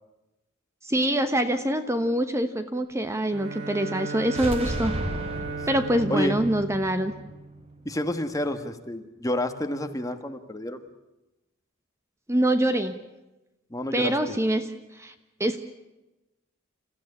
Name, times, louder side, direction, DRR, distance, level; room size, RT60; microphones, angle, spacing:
voice 1, 0.8-5.0 5.7-7.1 12.3-13.0 13.9-15.1 15.4-15.6, right 1 dB, 15° right, 9 dB, 1.1 m, -25 dB
Bowed string instrument, 3.3-7.9, right 4 dB, 60° right, 3.0 m, -36 dB
sound 1, 4.2-8.1, equal, 30° right, 3.2 m, -35 dB
voice 2, 6.1-6.4 7.8-10.8 13.7-14.4, left 1 dB, 15° left, 7 dB, 1.5 m, -29 dB
29.5 x 15.0 x 9.9 m, 1.0 s
head